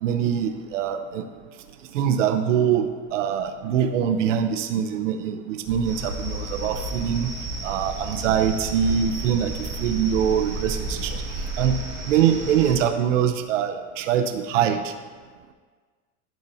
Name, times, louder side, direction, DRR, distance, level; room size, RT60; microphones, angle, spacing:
voice 1, 0.0-1.2 1.9-2.9 3.1-7.3 7.6-11.2 11.6-11.8 12.1-14.9, right 8 dB, 85° right, 7 dB, 0.7 m, -23 dB
sound 1, 5.7-11.8, right 2 dB, 5° left, 0.3 m, -34 dB
sound 2, 5.8-12.8, right 1 dB, 20° right, 1.5 m, -35 dB
12.0 x 5.5 x 2.7 m, 1.5 s
supercardioid pair, 165°, 36 cm